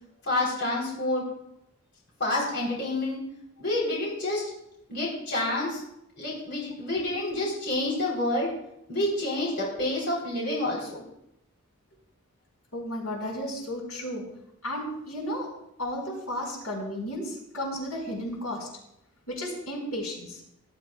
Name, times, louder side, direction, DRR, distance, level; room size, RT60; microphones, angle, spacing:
voice 1, 0.2-1.2 2.2-3.2 3.6-4.5 4.9-5.8 6.2-8.5 8.9-11.0, left 1 dB, 50° left, -4 dB, 3.6 m, -28 dB
voice 2, 12.7-14.2 14.6-15.5 15.8-18.7 19.3-20.4, equal, 85° left, -1 dB, 4.6 m, -33 dB
19.0 x 12.0 x 2.3 m, 0.81 s
head